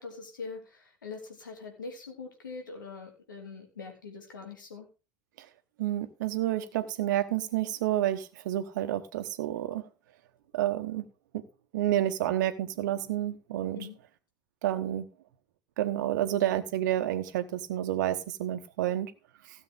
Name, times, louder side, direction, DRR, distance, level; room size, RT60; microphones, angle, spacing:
voice 1, 0.0-4.9 13.8-14.0, left 4 dB, 80° left, 2.7 m, -43 dB
voice 2, 5.8-9.8 10.5-11.1 11.3-11.4 11.7-13.8 14.6-15.1 15.8-19.1, right 12 dB, 70° right, 1.1 m, -29 dB
16.5 x 7.5 x 3.7 m
figure-of-eight pair, 60°, 10 cm